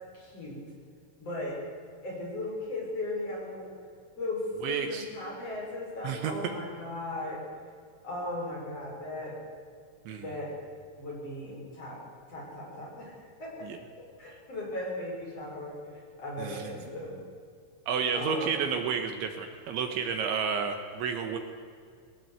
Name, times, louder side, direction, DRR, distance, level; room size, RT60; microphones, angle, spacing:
voice 1, 0.1-0.6 1.2-1.6 2.0-3.7 4.2-7.4 8.0-9.4 10.2-10.5 11.0-12.0 12.3-13.7 14.2-15.8 16.2-17.2 18.1-18.7, left 1 dB, 30° left, -3 dB, 6.7 m, -37 dB
voice 2, 4.6-5.0 6.0-6.5 10.1-10.4 13.6-13.8 16.4-16.7 17.9-21.4, right 6 dB, 75° right, 5 dB, 3.4 m, -31 dB
23.0 x 18.5 x 8.3 m, 2.2 s
omnidirectional pair, 5.9 m